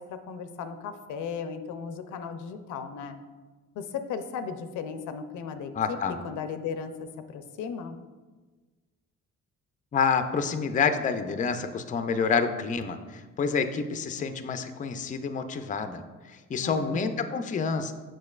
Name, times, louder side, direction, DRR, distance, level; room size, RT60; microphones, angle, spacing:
voice 1, 0.0-3.2 3.8-6.0 6.2-8.0 16.6-17.4, left 6 dB, 80° left, 9 dB, 0.5 m, -36 dB
voice 2, 5.7-6.2 9.9-17.9, left 5 dB, 25° left, 9 dB, 0.4 m, -28 dB
6.5 x 6.0 x 2.4 m, 1.3 s
cardioid pair, 90°, 30 cm